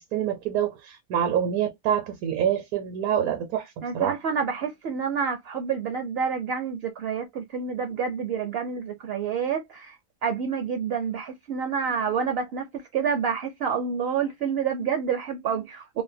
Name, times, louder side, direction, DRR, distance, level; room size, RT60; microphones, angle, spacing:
voice 1, 0.1-4.2, right 9 dB, 80° right, 1.1 m, -26 dB
voice 2, 3.8-10.0 10.2-16.0, right 6 dB, 60° right, 0.6 m, -28 dB
2.8 x 2.2 x 2.5 m
omnidirectional pair, 1.5 m